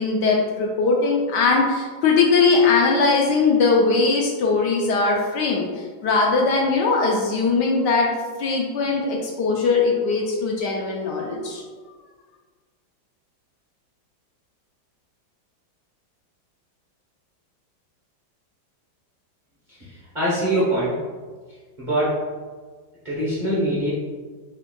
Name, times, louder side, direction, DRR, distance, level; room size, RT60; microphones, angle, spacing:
voice 1, 0.0-8.1 8.4-11.6, left 4 dB, 70° left, -1 dB, 1.2 m, -20 dB
voice 2, 20.1-20.9 21.8-22.2 23.0-23.9, right 1 dB, 30° right, -8 dB, 0.9 m, -22 dB
5.9 x 3.5 x 2.3 m, 1.5 s
omnidirectional pair, 2.1 m